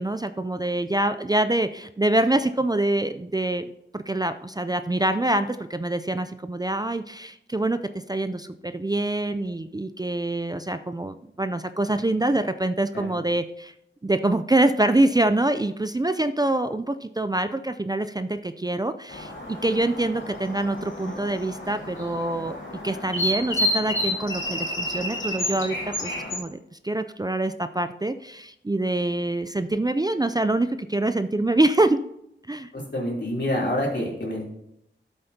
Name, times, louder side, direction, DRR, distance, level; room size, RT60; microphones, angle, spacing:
voice 1, 0.0-3.6 3.9-7.8 8.1-13.7 14.0-22.5 22.8-26.6 26.8-32.0 32.5-32.7, right 2 dB, 20° right, 10 dB, 0.4 m, -25 dB
sound 1, 19.1-26.4, left 1 dB, 85° left, 2.1 m, -30 dB
voice 2, 32.7-34.4, left 1 dB, 65° left, -4 dB, 3.4 m, -27 dB
13.0 x 7.8 x 2.8 m, 0.80 s
wide cardioid pair, 65°, 19 cm